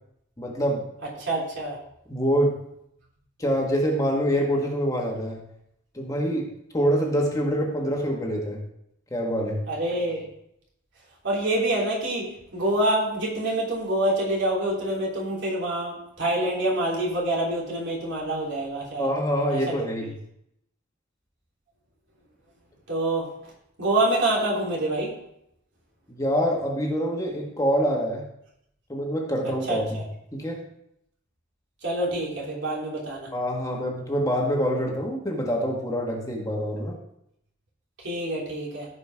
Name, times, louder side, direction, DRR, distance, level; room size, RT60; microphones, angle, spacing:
voice 1, 0.4-0.8 2.1-2.5 3.4-5.4 5.9-8.6 9.1-9.6 19.0-20.1 26.1-28.2 28.9-30.0 30.3-30.6 33.3-37.0, equal, 15° left, -1 dB, 1.6 m, -25 dB
voice 2, 1.2-1.8 9.7-10.3 11.2-12.3 12.5-19.1 19.5-19.6 22.9-23.2 23.8-25.1 29.7-30.0 31.8-33.3 38.0-38.9, right 1 dB, 60° right, -4 dB, 3.4 m, -26 dB
15.5 x 5.4 x 3.6 m, 0.76 s
head